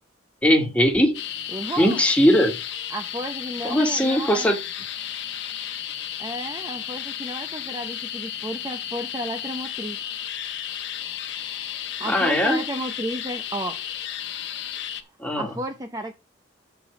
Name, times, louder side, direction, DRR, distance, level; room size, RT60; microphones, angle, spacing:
voice 1, 0.4-1.1 1.8-2.6 3.6-4.6 12.0-12.6 15.2-15.5, equal, 5° left, 2 dB, 1.6 m, -19 dB
sound 1, 1.1-15.0, left 10 dB, 65° left, 1.1 m, -33 dB
voice 2, 1.5-2.0 2.9-4.5 6.2-10.0 11.6-13.8 15.4-16.1, right 1 dB, 20° right, 5 dB, 0.7 m, -32 dB
6.8 x 5.9 x 6.0 m, 0.28 s
head